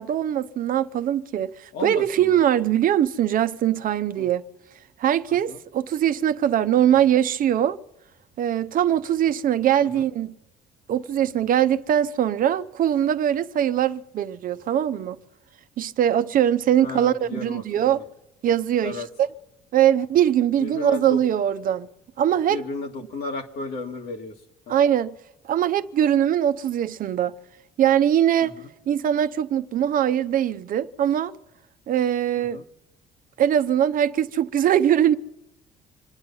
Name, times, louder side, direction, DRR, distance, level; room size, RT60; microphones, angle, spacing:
voice 1, 0.0-4.4 5.0-7.8 8.4-10.3 10.9-15.2 15.8-18.0 18.4-19.3 19.7-21.9 22.2-22.6 24.7-25.1 25.4-27.4 27.8-28.5 28.9-31.4 31.9-32.6 33.4-35.1, right 10 dB, 55° right, 0.8 m, -22 dB
voice 2, 1.7-2.4 4.2-4.3 5.3-5.6 9.8-10.0 16.8-18.0 18.8-19.1 20.6-21.2 22.5-24.3 24.7-24.8 28.4-28.5 32.5-32.6, left 4 dB, 65° left, 1.9 m, -34 dB
26.5 x 9.6 x 5.5 m
cardioid pair, 110°, 17 cm